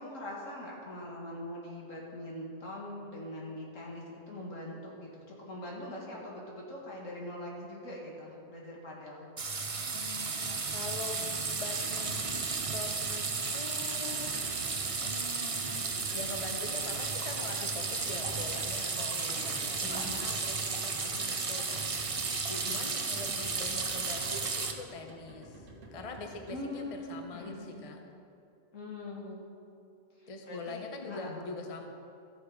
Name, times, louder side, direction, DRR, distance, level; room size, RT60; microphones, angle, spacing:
voice 1, 0.0-9.3 18.9-20.2 22.5-22.7 26.5-27.8 28.7-29.4 30.2-30.8 31.1-31.6, left 1 dB, 80° left, -3 dB, 2.4 m, -42 dB
sound 1, 9.4-24.7, right 4 dB, 35° right, 0.6 m, -34 dB
voice 2, 9.9-12.3 12.7-13.3 13.5-14.3 15.0-28.0 30.3-31.9, left 3 dB, 30° left, 4 dB, 0.7 m, -43 dB
sound 2, 11.8-27.7, right 2 dB, 75° right, 1.7 m, -51 dB
14.0 x 6.5 x 4.9 m, 2.6 s
omnidirectional pair, 1.3 m